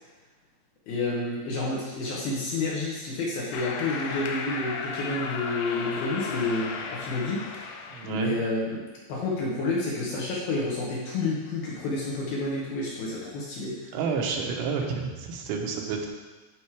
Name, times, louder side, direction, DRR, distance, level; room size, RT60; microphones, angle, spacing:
voice 1, 0.9-7.6 8.0-8.8 9.1-14.0, left 2 dB, 65° left, -5 dB, 2.6 m, -29 dB
sound 1, 3.5-8.4, left 5 dB, 85° left, 3.1 m, -35 dB
voice 2, 7.9-8.3 13.9-16.1, right 5 dB, 85° right, 1 dB, 3.5 m, -30 dB
10.5 x 5.3 x 4.7 m, 1.3 s
omnidirectional pair, 5.4 m